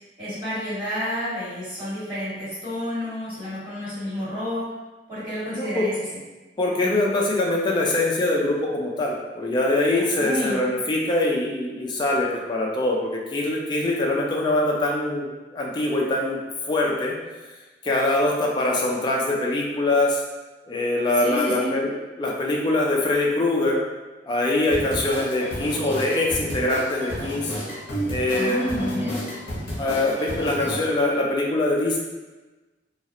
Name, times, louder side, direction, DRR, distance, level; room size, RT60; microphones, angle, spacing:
voice 1, 0.2-4.6 5.1-5.9 10.2-10.6 21.2-21.7 28.3-29.2, left 1 dB, 30° right, -12 dB, 1.5 m, -30 dB
voice 2, 5.6-5.9 6.6-16.4 16.7-17.2 17.8-20.2 20.7-23.8 24.2-27.5 28.1-29.2 29.8-32.0, left 2 dB, 25° left, -2 dB, 0.3 m, -23 dB
sound 1, 24.7-30.8, equal, 50° left, 0.7 m, -32 dB
2.4 x 2.0 x 2.7 m, 1.2 s
head